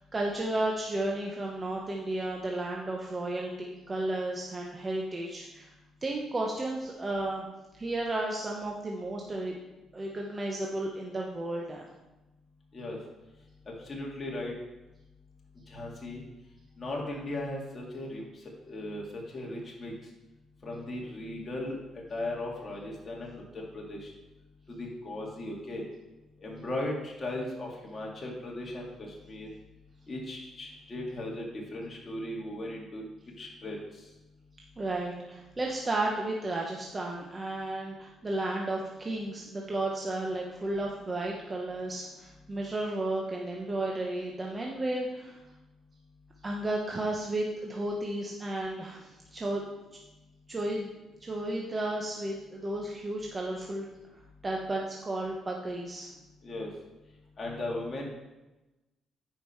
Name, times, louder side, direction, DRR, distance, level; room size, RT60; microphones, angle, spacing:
voice 1, 0.0-5.7 6.0-7.5 7.7-9.6 9.9-11.8 34.8-45.4 46.4-49.6 50.5-50.9 51.2-53.9 54.4-56.1, right 2 dB, 25° right, -1 dB, 1.0 m, -33 dB
voice 2, 13.9-14.5 15.7-16.2 16.8-18.2 18.7-19.0 19.3-19.9 20.6-21.8 22.1-24.1 24.7-25.8 26.4-29.5 30.1-33.0 33.4-33.8 56.4-56.7 57.4-58.1, left 1 dB, 35° left, -2 dB, 2.2 m, -37 dB
9.3 x 5.2 x 4.5 m, 1.0 s
cardioid pair, 90°, 0 cm